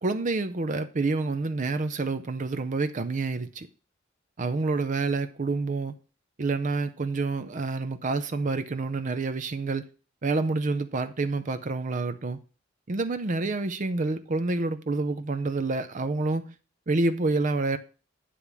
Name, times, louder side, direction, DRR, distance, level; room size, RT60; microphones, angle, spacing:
voice 1, 0.0-3.7 4.4-5.9 6.4-9.9 10.2-12.4 12.9-16.5 16.9-17.8, right 3 dB, 40° right, 0.5 m, -28 dB
10.0 x 3.4 x 7.1 m
head